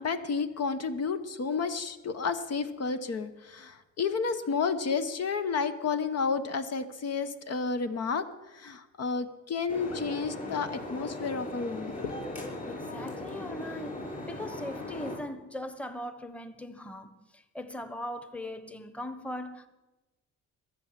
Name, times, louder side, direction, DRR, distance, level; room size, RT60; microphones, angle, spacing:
voice 1, 0.0-12.2, left 5 dB, 55° left, 1.1 m, -31 dB
sound 1, 9.7-15.2, left 1 dB, 25° left, 6.7 m, -38 dB
voice 2, 12.7-19.7, left 1 dB, 5° left, 1.2 m, -40 dB
22.0 x 7.3 x 7.5 m
cardioid pair, 90°, 30 cm